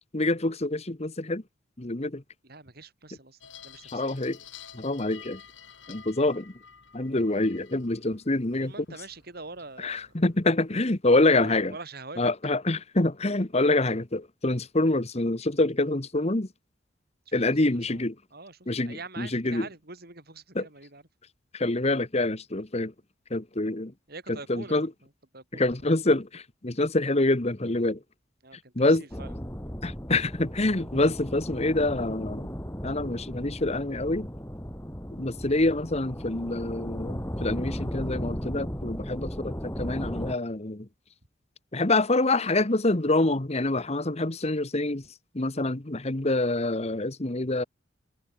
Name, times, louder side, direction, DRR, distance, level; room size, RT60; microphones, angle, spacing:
voice 1, 0.1-1.4 1.8-2.2 3.9-4.4 4.7-5.4 5.9-6.5 6.9-8.7 9.8-11.7 12.2-16.5 17.3-18.1 18.7-19.7 20.5-20.7 21.5-22.9 23.3-23.9 24.3-24.9 25.5-28.0 28.7-29.0 29.8-32.5 32.8-34.3 35.2-40.9 41.7-45.0 45.3-47.6, left 2 dB, 35° left, 1.4 m, -26 dB
voice 2, 2.4-3.4 3.6-4.2 8.6-10.1 11.2-12.3 17.3-18.0 18.3-18.6 18.8-21.0 24.1-24.9 25.3-25.7 28.4-29.3, right 3 dB, 55° right, 5.5 m, -44 dB
sound 1, 3.4-10.8, left 8 dB, 75° left, 6.4 m, -51 dB
sound 2, 29.1-40.3, equal, 15° left, 6.1 m, -36 dB
head